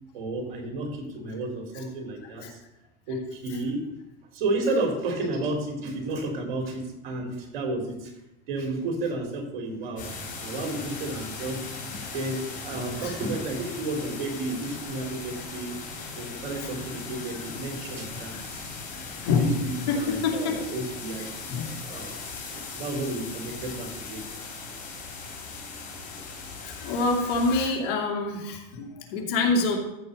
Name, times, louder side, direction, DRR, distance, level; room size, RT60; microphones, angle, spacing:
voice 1, 0.1-2.6 3.1-3.8 4.3-8.1 8.5-15.7 16.2-18.8 19.4-21.5 21.9-22.2 22.4-24.2, right 2 dB, 80° right, 3 dB, 3.3 m, -32 dB
sound 1, 10.0-27.7, left 4 dB, 30° left, 4.0 m, -38 dB
voice 2, 19.0-19.6 19.9-20.6 21.5-21.7 26.6-29.8, left 3 dB, 65° left, 2 dB, 2.7 m, -26 dB
14.0 x 4.7 x 6.6 m, 0.91 s
supercardioid pair, 120°, 29 cm